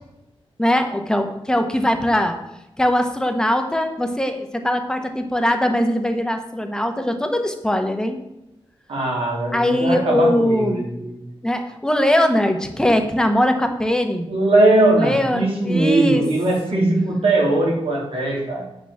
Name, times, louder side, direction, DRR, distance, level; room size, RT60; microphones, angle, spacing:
voice 1, 0.6-2.4 2.8-8.2 9.5-10.8 11.4-14.3 14.9-16.2 16.7-16.8, left 1 dB, 5° left, 5 dB, 1.1 m, -21 dB
voice 2, 8.9-11.2 14.3-18.6, right 2 dB, 75° right, -2 dB, 3.3 m, -20 dB
8.8 x 5.1 x 7.2 m, 0.89 s
wide cardioid pair, 130°, 10 cm